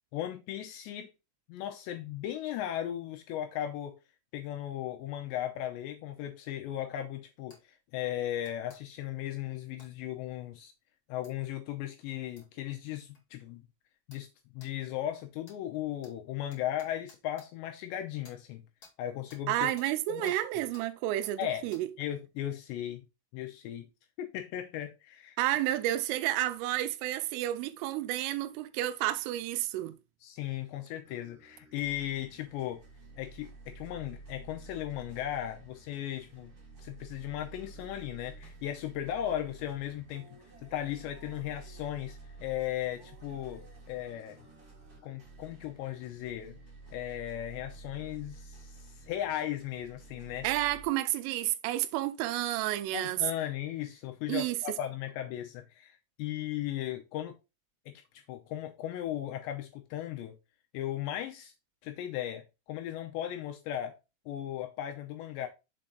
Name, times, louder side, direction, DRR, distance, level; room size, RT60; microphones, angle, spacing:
voice 1, 0.1-1.1 1.5-4.0 4.3-10.7 11.1-13.6 14.1-14.3 14.5-18.6 19.0-19.7 20.1-20.3 21.4-21.7 22.0-23.0 23.3-23.9 24.2-25.4 30.2-32.8 33.2-36.5 36.8-43.6 43.9-44.4 45.0-46.6 46.9-50.5 52.9-57.4 57.9-60.4 60.7-61.5 61.8-64.0 64.3-65.5, left 12 dB, 80° left, 2.5 m, -37 dB
sound 1, 7.5-7.6 8.4-8.8 9.8-9.9 11.2-11.3 12.4-12.5 13.1-13.2 14.1-14.3 14.6-14.7 15.4-15.6 16.0-16.1 16.5-17.5 18.2-18.4 18.8-18.9 19.3-19.4 19.8-19.9 20.2-20.4 20.7-20.9 21.2-21.4 21.7-21.8, left 3 dB, 55° left, 1.0 m, -56 dB
voice 2, 19.5-21.9 25.4-30.0 50.4-53.2 54.3-54.6, right 14 dB, 85° right, 3.2 m, -31 dB
sound 2, 31.0-50.9, right 3 dB, 30° right, 2.5 m, -51 dB
7.3 x 4.5 x 3.9 m
omnidirectional pair, 5.8 m